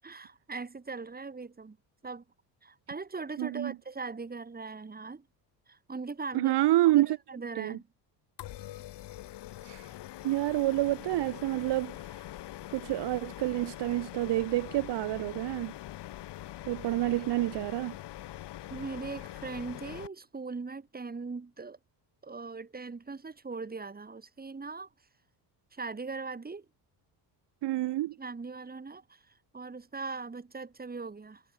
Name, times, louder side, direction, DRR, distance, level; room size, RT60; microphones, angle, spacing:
voice 1, 0.0-1.8 2.0-2.2 2.6-5.3 5.7-6.5 6.9-7.0 7.3-7.9 18.7-21.8 22.2-24.9 25.7-26.7 28.2-31.4, right 4 dB, 20° right, 7.5 m, -40 dB
voice 2, 3.4-3.7 6.3-7.2 7.6-7.8 9.6-9.9 10.2-12.2 12.7-15.7 16.7-17.9 27.6-28.2, right 16 dB, 70° right, 2.2 m, -28 dB
sound 1, 8.4-20.1, left 14 dB, 65° left, 4.3 m, -43 dB
cardioid pair, 120°, 43 cm